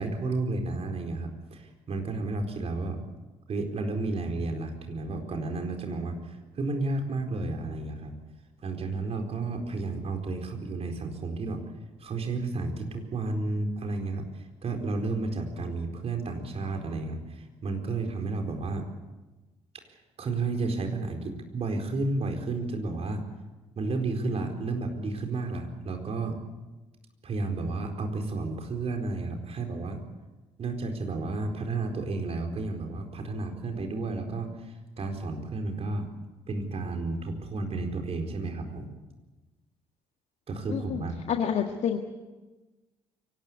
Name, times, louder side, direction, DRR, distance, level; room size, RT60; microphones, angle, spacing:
voice 1, 0.0-3.0 3.5-8.1 8.6-11.6 12.0-14.2 14.6-18.8 20.2-23.2 23.8-26.4 27.2-30.0 30.6-36.1 36.5-38.9 40.5-41.2, right 3 dB, 45° right, 4 dB, 4.4 m, -32 dB
voice 2, 40.7-42.0, left 8 dB, 50° left, 5 dB, 1.7 m, -29 dB
24.0 x 18.5 x 8.2 m, 1.2 s
figure-of-eight pair, 45°, 15 cm